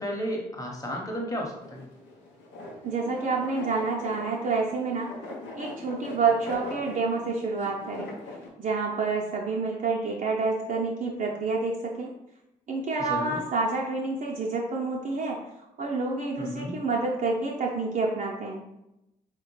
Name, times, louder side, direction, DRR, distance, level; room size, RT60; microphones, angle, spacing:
voice 1, 0.0-1.8 13.0-13.4 16.4-16.8, equal, 20° left, -1 dB, 1.0 m, -33 dB
sound 1, 1.6-8.5, left 1 dB, 75° left, 0.6 m, -41 dB
voice 2, 2.8-5.1 5.6-8.1 8.6-12.1 12.7-15.4 15.8-18.6, right 4 dB, 45° right, -2 dB, 0.6 m, -28 dB
4.0 x 2.1 x 3.1 m, 0.89 s
hypercardioid pair, 40°, 19 cm